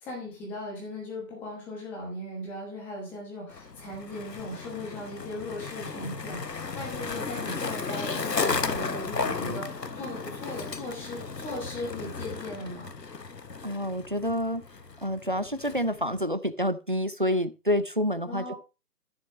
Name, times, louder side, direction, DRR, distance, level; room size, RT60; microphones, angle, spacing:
voice 1, 0.0-12.9 18.2-18.5, left 1 dB, 5° left, -1 dB, 1.1 m, -38 dB
Skateboard, 3.5-16.2, left 4 dB, 85° left, 1.1 m, -34 dB
voice 2, 13.6-14.6 15.0-18.5, equal, 35° right, 14 dB, 0.5 m, -28 dB
14.0 x 6.4 x 3.1 m, 0.29 s
figure-of-eight pair, 145°, 48 cm